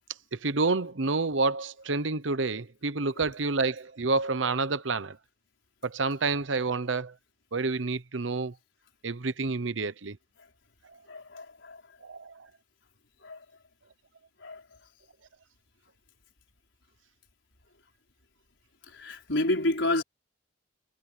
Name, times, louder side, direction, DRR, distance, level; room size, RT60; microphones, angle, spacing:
voice 1, 0.3-5.2 5.8-7.1 7.5-8.5 9.0-10.2 12.0-12.5, right 3 dB, 85° right, 1.0 m, -29 dB
voice 2, 11.1-11.8 13.2-13.4 14.4-14.6 18.9-20.0, left 1 dB, 75° left, 4.9 m, -30 dB
head